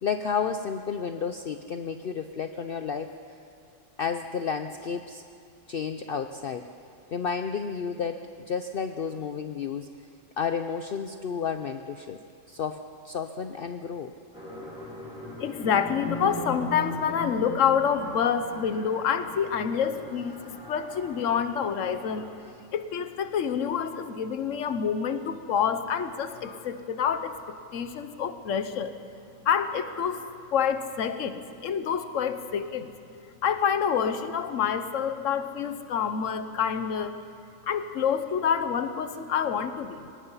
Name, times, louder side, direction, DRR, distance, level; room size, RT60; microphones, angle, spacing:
voice 1, 0.0-3.1 4.0-5.2 5.7-6.7 7.1-8.2 8.5-9.9 10.4-12.2 12.5-14.1, left 6 dB, 55° left, 8 dB, 0.8 m, -31 dB
sound 1, 14.3-22.3, left 1 dB, 5° right, 7.2 m, -39 dB
voice 2, 15.4-22.3 22.7-28.9 29.4-30.2 30.5-32.9 33.4-37.2 37.7-40.1, left 7 dB, 75° left, 10 dB, 1.3 m, -27 dB
23.5 x 19.5 x 5.6 m, 2.5 s
omnidirectional pair, 1.3 m